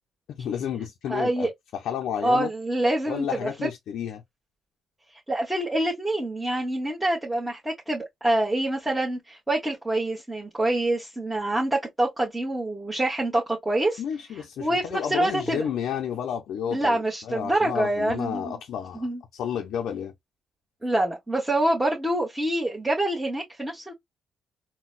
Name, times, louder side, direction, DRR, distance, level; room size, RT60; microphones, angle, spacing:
voice 1, 0.3-2.5 3.1-4.2 14.0-20.1, left 8 dB, 75° left, 0.5 m, -31 dB
voice 2, 1.1-1.5 2.2-3.5 5.3-14.0 14.6-15.6 16.7-18.6 18.9-19.2 20.8-23.9, right 1 dB, 10° right, 1.2 m, -26 dB
3.9 x 2.2 x 2.4 m
cardioid pair, 90°, 0 cm